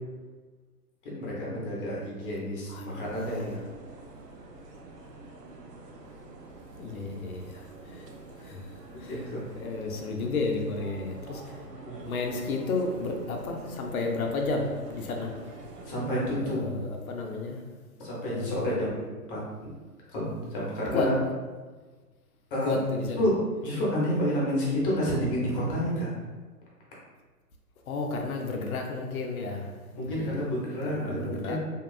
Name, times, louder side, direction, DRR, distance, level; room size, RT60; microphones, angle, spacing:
voice 1, 1.0-3.6 9.1-9.4 11.8-12.1 15.9-16.6 18.0-19.7 20.1-21.1 22.5-22.8 23.1-26.1 29.9-31.6, equal, 35° left, -5 dB, 0.8 m, -29 dB
voice 2, 2.7-3.0 6.8-8.1 8.4-8.7 9.0-9.2 9.6-11.6 12.0-15.5 16.3-17.6 18.2-18.9 20.9-21.3 22.6-23.2 27.9-30.4 30.8-31.6, left 3 dB, 65° left, 2 dB, 0.6 m, -32 dB
sound 1, 3.0-16.4, right 2 dB, 80° right, 0.7 m, -46 dB
2.9 x 2.2 x 2.3 m, 1.3 s
hypercardioid pair, 135°, 47 cm